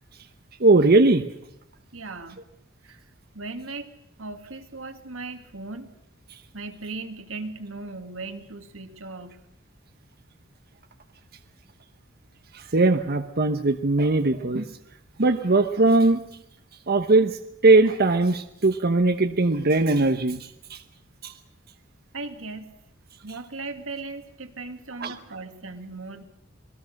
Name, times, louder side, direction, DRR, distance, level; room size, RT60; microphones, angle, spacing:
voice 1, 0.6-1.3 12.5-14.7 15.2-16.2 16.9-20.8 21.2-21.3 25.0-25.1, right 2 dB, 50° right, 8 dB, 1.0 m, -20 dB
voice 2, 1.9-2.4 2.8-3.0 3.3-3.9 4.2-5.9 6.5-9.4 22.1-22.7 23.2-26.2, right 3 dB, 85° right, 7 dB, 2.2 m, -37 dB
26.5 x 19.5 x 6.6 m, 0.80 s
head